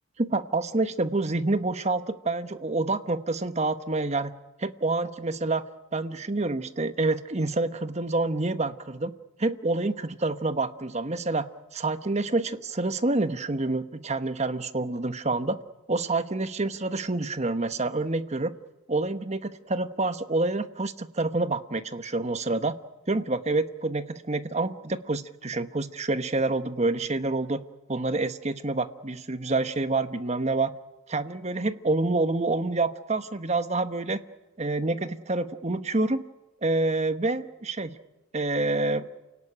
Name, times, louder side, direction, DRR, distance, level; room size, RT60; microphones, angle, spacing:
voice 1, 0.2-4.3 4.6-5.6 5.9-9.1 9.4-11.5 11.7-15.6 15.9-18.5 18.9-22.7 23.1-27.6 27.9-30.7 31.1-34.2 34.6-36.2 36.6-37.9 38.3-39.1, right 2 dB, 35° right, 11 dB, 1.0 m, -27 dB
28.5 x 18.0 x 10.0 m, 1.0 s
head